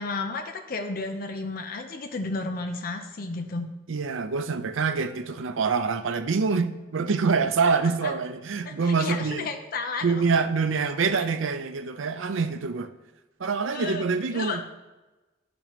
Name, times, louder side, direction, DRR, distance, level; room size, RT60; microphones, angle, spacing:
voice 1, 0.0-3.7 7.7-8.1 8.6-10.1 13.7-14.6, left 3 dB, 45° left, 0.6 m, -33 dB
voice 2, 3.9-9.5 10.0-12.9 13.4-14.6, right 5 dB, 80° right, 0.5 m, -25 dB
10.5 x 6.0 x 3.0 m
head